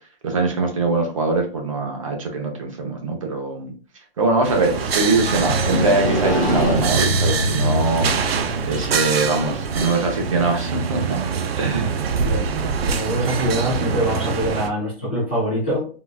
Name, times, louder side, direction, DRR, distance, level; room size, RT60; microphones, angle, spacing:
voice 1, 0.2-3.7 4.2-8.4 8.6-11.2 11.6-12.0, right 3 dB, 35° right, 3 dB, 0.6 m, -22 dB
Motorcycle, 4.4-10.4, equal, 5° right, 0.8 m, -25 dB
sound 1, 4.4-14.7, right 6 dB, 80° right, 0.6 m, -25 dB
voice 2, 12.2-12.5 12.8-15.9, equal, 10° left, -11 dB, 0.4 m, -24 dB
3.7 x 2.3 x 2.3 m, 0.37 s
hypercardioid pair, 175°, 30 cm